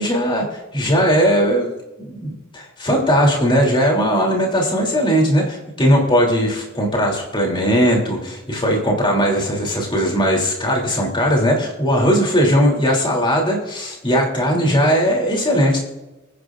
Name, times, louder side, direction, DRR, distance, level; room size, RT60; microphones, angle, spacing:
voice 1, 0.0-15.8, equal, 20° left, -1 dB, 3.3 m, -18 dB
25.0 x 10.0 x 2.6 m, 1.1 s
head